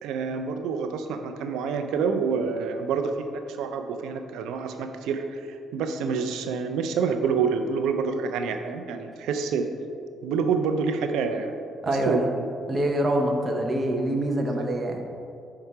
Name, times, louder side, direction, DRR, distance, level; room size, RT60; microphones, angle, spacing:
voice 1, 0.0-5.5 5.7-9.7 10.2-11.5 11.9-12.3 14.5-14.6, right 5 dB, 90° right, 6 dB, 0.5 m, -27 dB
voice 2, 11.8-12.3 12.7-15.0, right 1 dB, 35° right, 2 dB, 0.8 m, -25 dB
5.6 x 4.8 x 4.7 m, 2.5 s
cardioid pair, 90°, 0 cm